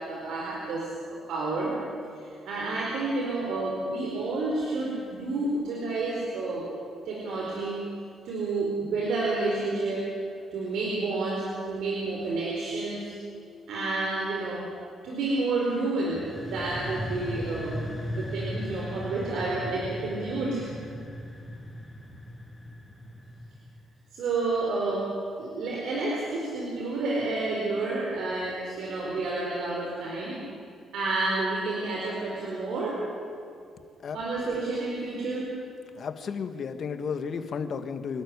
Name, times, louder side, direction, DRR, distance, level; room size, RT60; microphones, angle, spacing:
voice 1, 0.0-1.8 2.1-6.7 7.1-7.8 8.2-10.1 10.5-13.1 13.7-14.7 15.0-17.8 18.2-20.7 24.1-30.4 30.9-33.1 34.1-35.6, right 3 dB, 75° right, -3 dB, 4.3 m, -30 dB
sound 1, 16.1-23.7, equal, 10° left, 4.3 m, -37 dB
voice 2, 36.0-38.2, left 6 dB, 55° left, 8 dB, 1.7 m, -33 dB
27.0 x 12.5 x 9.8 m, 2.3 s
cardioid pair, 90°, 0 cm